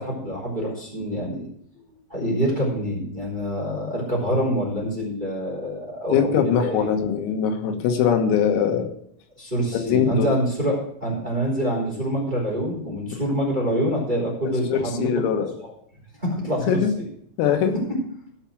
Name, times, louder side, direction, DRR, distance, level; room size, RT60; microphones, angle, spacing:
voice 1, 0.0-1.5 1.8-6.9 9.4-15.1 16.2-16.8, equal, 10° right, -3 dB, 2.6 m, -26 dB
voice 2, 6.1-8.9 9.7-10.3 13.1-13.2 14.7-15.5 16.7-16.9 17.4-17.7, left 7 dB, 90° left, 5 dB, 4.0 m, -22 dB
15.5 x 5.9 x 6.1 m, 0.67 s
omnidirectional pair, 6.0 m